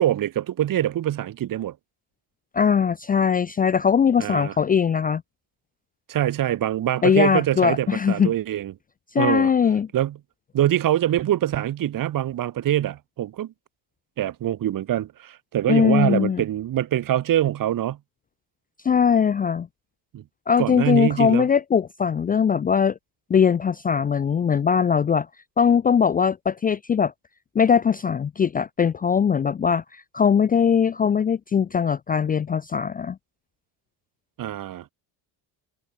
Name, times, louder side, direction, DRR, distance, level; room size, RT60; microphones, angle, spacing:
voice 1, 0.0-1.8 4.2-4.5 6.1-8.7 9.2-9.5 9.9-10.2 10.5-13.5 14.2-18.0 20.1-20.2 20.6-21.5 34.4-34.9, right 12 dB, 50° right, 6.0 m, -24 dB
voice 2, 2.5-5.2 7.0-8.3 9.1-9.9 15.7-16.4 18.8-19.7 20.5-23.0 23.3-25.3 25.6-27.1 27.5-33.2, left 7 dB, 20° left, 0.6 m, -20 dB
cardioid pair, 155°, 43 cm